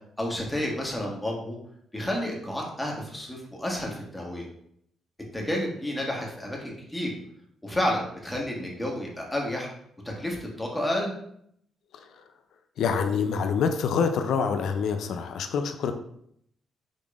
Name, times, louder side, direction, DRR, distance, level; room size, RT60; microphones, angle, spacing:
voice 1, 0.2-1.6 1.9-4.5 5.3-7.1 7.6-9.7 10.0-11.1, left 1 dB, 10° left, -1 dB, 1.3 m, -30 dB
voice 2, 12.8-15.9, left 6 dB, 75° left, 7 dB, 0.4 m, -26 dB
5.0 x 3.5 x 2.4 m, 0.71 s
supercardioid pair, 65°, 0 cm